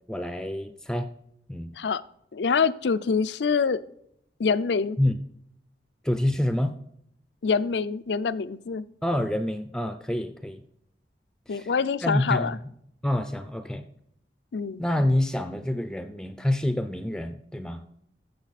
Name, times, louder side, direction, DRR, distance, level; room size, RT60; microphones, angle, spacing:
voice 1, 0.1-1.1 1.5-1.7 5.0-5.2 6.0-6.8 9.0-10.6 11.5-11.7 12.0-12.6 13.0-13.8 14.8-17.8, left 1 dB, 5° left, 9 dB, 0.5 m, -27 dB
voice 2, 2.3-3.8 4.4-5.0 7.4-8.8 11.5-12.6 14.5-14.8, left 5 dB, 85° left, 15 dB, 0.5 m, -25 dB
14.5 x 6.8 x 4.1 m, 0.73 s
head